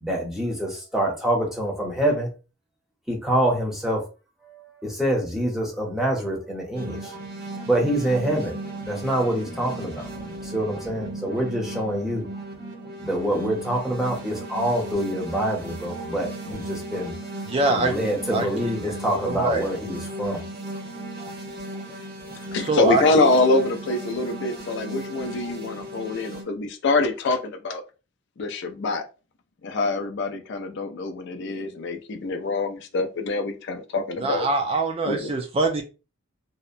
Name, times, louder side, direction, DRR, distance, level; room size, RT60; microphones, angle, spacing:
voice 1, 0.0-2.3 3.1-4.0 4.8-7.2 7.7-8.5 8.8-10.1 10.4-12.2 13.0-17.1 17.7-20.4, right 1 dB, ahead, -2 dB, 0.7 m, -26 dB
sound 1, 6.7-26.4, right 1 dB, 50° right, 0.8 m, -36 dB
voice 2, 17.5-18.0 18.3-18.9 19.2-19.6 22.6-23.3 34.2-35.8, right 3 dB, 25° right, 4 dB, 0.3 m, -24 dB
voice 3, 22.5-27.8 28.4-29.0 29.6-34.5 35.1-35.3, left 3 dB, 55° left, 6 dB, 0.4 m, -25 dB
2.7 x 2.1 x 2.4 m, 0.31 s
head